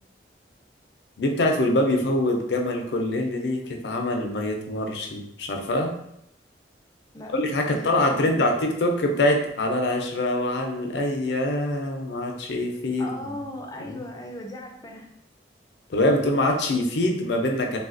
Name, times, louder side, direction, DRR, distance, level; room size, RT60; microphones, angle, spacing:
voice 1, 1.2-5.9 7.3-13.4 13.9-14.0 15.9-17.8, left 1 dB, 75° left, 2 dB, 0.5 m, -24 dB
voice 2, 7.7-8.3 13.0-15.1, left 1 dB, 20° left, 1 dB, 0.4 m, -38 dB
3.4 x 2.3 x 2.5 m, 0.75 s
head